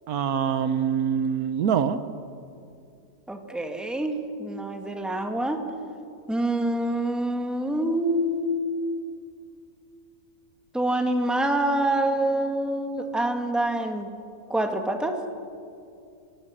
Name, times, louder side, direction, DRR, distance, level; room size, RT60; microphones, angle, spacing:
voice 1, 0.1-2.0, right 7 dB, 75° right, 12 dB, 1.3 m, -24 dB
voice 2, 3.3-5.6 6.3-8.7 10.7-14.1 14.5-15.2, right 1 dB, ahead, 4 dB, 1.6 m, -26 dB
25.5 x 16.5 x 7.4 m, 2.4 s
omnidirectional pair, 1.6 m